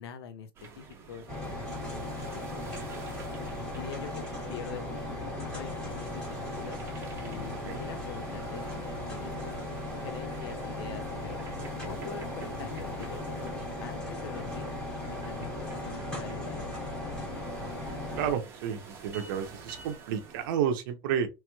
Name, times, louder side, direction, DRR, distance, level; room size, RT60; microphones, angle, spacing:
voice 1, 0.0-2.1 3.3-4.2 4.5-6.8 7.2-9.5 10.0-11.4 11.8-13.5 13.8-14.7 15.3-17.4, left 7 dB, 80° left, 0.8 m, -44 dB
sound 1, 0.6-20.5, right 5 dB, 20° right, 0.7 m, -49 dB
sound 2, 1.3-18.3, left 2 dB, 5° left, 1.1 m, -37 dB
voice 2, 18.1-21.3, right 8 dB, 55° right, 0.7 m, -31 dB
3.1 x 3.0 x 2.2 m
supercardioid pair, 165°, 13 cm